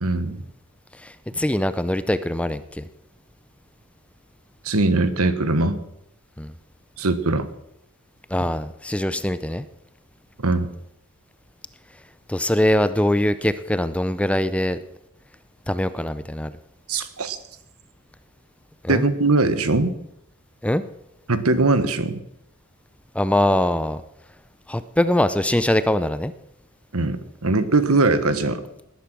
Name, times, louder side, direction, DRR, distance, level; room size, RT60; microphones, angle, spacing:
voice 1, 0.0-0.4 4.6-5.8 7.0-7.5 10.4-10.7 16.9-17.4 18.9-19.9 21.3-22.2 26.9-28.6, right 2 dB, 80° right, 12 dB, 1.4 m, -21 dB
voice 2, 0.9-2.8 6.4-6.5 8.3-9.6 12.3-14.8 15.7-16.5 18.8-19.0 20.6-20.8 23.1-24.0 24.7-26.3, left 1 dB, 5° left, 13 dB, 0.5 m, -22 dB
19.0 x 10.5 x 6.2 m, 0.82 s
head